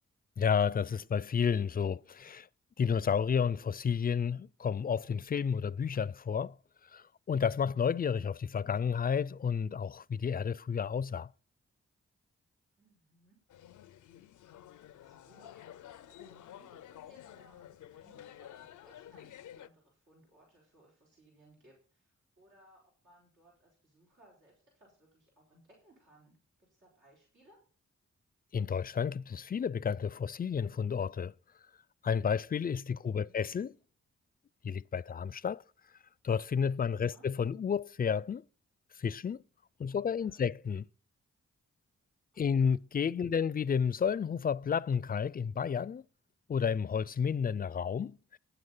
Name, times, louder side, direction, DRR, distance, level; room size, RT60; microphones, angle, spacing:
voice 1, 0.4-2.5 2.8-6.6 6.9-11.3 28.5-31.3 32.0-33.7 34.6-35.6 36.2-38.4 39.0-39.4 39.8-40.9 42.4-46.0 46.5-48.4, left 7 dB, 30° left, 0.4 m, -31 dB
voice 2, 12.8-13.4 14.9-27.6 32.9-33.4 36.9-37.3 39.8-40.5 42.3-42.5, right 1 dB, 85° right, 4.3 m, -64 dB
sound 1, 13.5-19.7, left 11 dB, 90° left, 0.5 m, -51 dB
9.6 x 8.0 x 5.5 m
cardioid pair, 40°, 29 cm